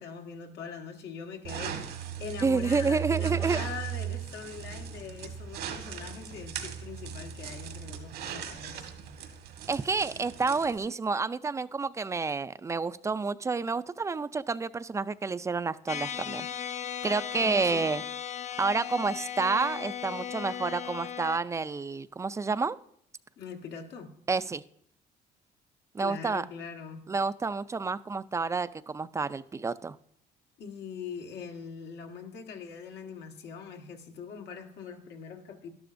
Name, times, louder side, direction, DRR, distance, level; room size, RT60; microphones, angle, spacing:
voice 1, 0.0-8.9 17.4-17.9 23.4-24.1 26.0-27.0 30.6-35.7, left 6 dB, 80° left, 1.6 m, -42 dB
sound 1, 1.4-10.8, right 10 dB, 85° right, 1.6 m, -37 dB
voice 2, 2.4-3.6 9.7-16.5 17.0-18.0 18.6-22.8 24.3-24.6 25.9-26.4 27.1-30.0, right 4 dB, 15° right, 0.3 m, -29 dB
sound 2, 15.9-21.4, left 9 dB, 45° left, 0.5 m, -37 dB
12.0 x 12.0 x 2.6 m
cardioid pair, 110°, 17 cm